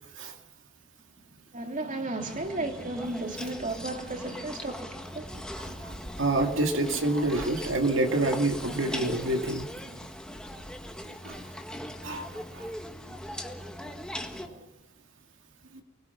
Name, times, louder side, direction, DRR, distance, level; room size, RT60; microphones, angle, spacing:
voice 1, 1.5-5.4 14.4-14.7, right 2 dB, 40° right, 2.7 m, -34 dB
sound 1, 2.2-14.5, equal, 5° left, 1.7 m, -40 dB
voice 2, 5.7-9.7 11.2-11.4 12.0-12.6 15.7-15.8, right 2 dB, 65° right, 2.5 m, -28 dB
29.0 x 20.5 x 6.0 m
head